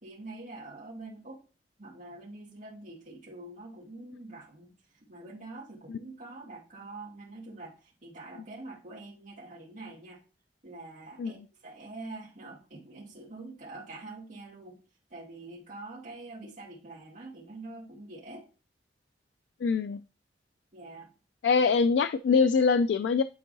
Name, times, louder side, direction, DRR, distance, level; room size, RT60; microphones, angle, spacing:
voice 1, 0.0-1.4 1.8-10.2 10.6-14.8 15.1-18.5 20.7-21.1, right 2 dB, 45° right, -4 dB, 2.1 m, -45 dB
voice 2, 19.6-20.0 21.4-23.2, left 5 dB, 75° left, 12 dB, 0.3 m, -24 dB
9.4 x 4.6 x 2.6 m, 0.33 s
head